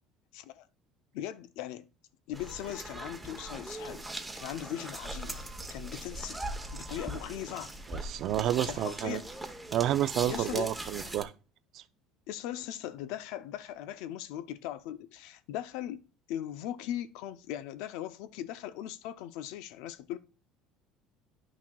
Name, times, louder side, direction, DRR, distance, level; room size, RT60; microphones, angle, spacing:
voice 1, 0.3-0.7 1.1-1.9 2.3-4.1 4.4-6.5 6.7-7.7 8.7-9.3 10.2-11.0 12.3-16.0 16.3-20.2, left 12 dB, 80° left, 0.5 m, -39 dB
sound 1, 2.3-11.2, right 1 dB, 10° right, 0.8 m, -40 dB
voice 2, 7.9-9.2 9.7-11.3 11.7-11.8, right 12 dB, 55° right, 0.4 m, -30 dB
10.5 x 6.0 x 2.3 m
cardioid pair, 125°, 0 cm